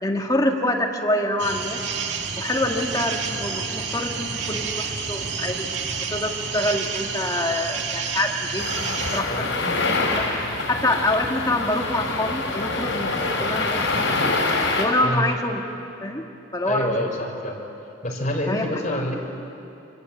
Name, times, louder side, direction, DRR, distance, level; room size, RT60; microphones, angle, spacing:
voice 1, 0.0-1.8 2.4-5.7 6.1-8.7 9.1-9.3 10.1-10.3 10.7-14.2 14.8-15.6 16.0-16.2 16.5-16.9 18.5-18.6, left 1 dB, 20° left, 1 dB, 1.9 m, -25 dB
sound 1, 1.4-9.2, right 5 dB, 65° right, 2.2 m, -29 dB
sound 2, 8.6-14.8, left 3 dB, 80° left, 5.4 m, -25 dB
voice 2, 16.6-17.6 18.0-19.1, left 1 dB, 40° left, 0 dB, 4.9 m, -26 dB
27.5 x 25.0 x 8.5 m, 2.8 s
head